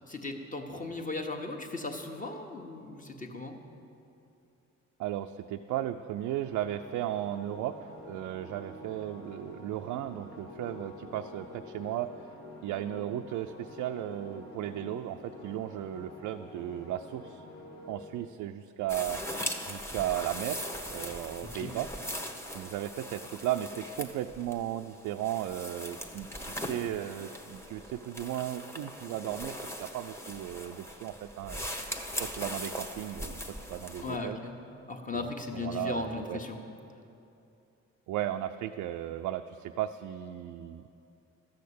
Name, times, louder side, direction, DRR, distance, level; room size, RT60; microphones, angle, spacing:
voice 1, 0.1-3.6 21.4-21.7 34.0-34.6 34.9-36.7, left 3 dB, 25° left, 4 dB, 1.3 m, -37 dB
voice 2, 5.0-7.8 8.1-12.1 12.6-17.4 17.9-19.2 19.7-21.9 22.5-31.7 32.2-34.4 35.1-36.4 38.1-40.9, right 12 dB, 85° right, 6 dB, 0.5 m, -35 dB
sound 1, 6.1-18.0, left 2 dB, 85° left, 2.8 m, -48 dB
sound 2, 18.9-34.2, equal, 10° left, 1.2 m, -40 dB
13.0 x 6.5 x 8.4 m, 2.7 s
cardioid pair, 90°, 30 cm